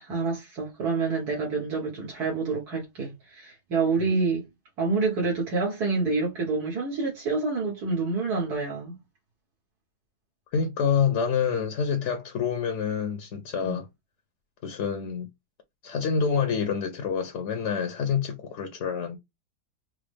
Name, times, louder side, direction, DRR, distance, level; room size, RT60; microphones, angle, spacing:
voice 1, 0.0-4.5 4.8-9.0 13.6-13.8, right 4 dB, 75° right, 1.7 m, -27 dB
voice 2, 10.5-13.8 14.6-15.3 15.8-19.2, left 6 dB, 60° left, 0.9 m, -27 dB
4.7 x 2.0 x 3.3 m
omnidirectional pair, 1.7 m